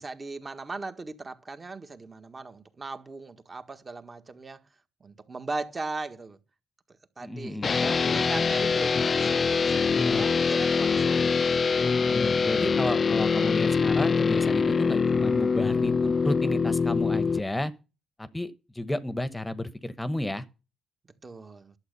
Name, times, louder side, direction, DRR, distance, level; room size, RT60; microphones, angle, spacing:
voice 1, 0.0-4.6 5.0-6.4 7.2-11.4 11.8-11.9 21.2-21.7, right 3 dB, 30° right, 1.5 m, -39 dB
voice 2, 7.2-7.7 9.9-10.2 12.1-17.7 18.2-20.4, left 1 dB, 10° left, 1.0 m, -32 dB
sound 1, 7.6-17.4, left 5 dB, 40° left, 0.5 m, -24 dB
11.5 x 7.4 x 6.8 m
cardioid pair, 90°, 0 cm